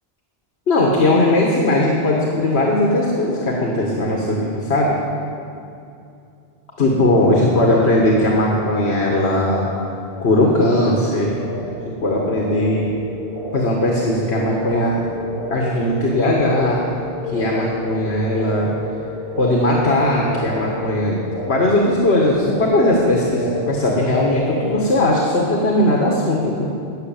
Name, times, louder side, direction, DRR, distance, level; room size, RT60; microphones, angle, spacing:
voice 1, 0.7-5.0 6.8-9.7 10.2-11.4 11.8-12.9 13.5-15.0 15.5-16.8 17.3-18.7 19.4-26.7, left 1 dB, 85° left, -2 dB, 1.7 m, -18 dB
sound 1, 9.9-24.9, left 1 dB, 60° right, 2.1 m, -31 dB
13.5 x 6.5 x 8.7 m, 2.6 s
omnidirectional pair, 1.1 m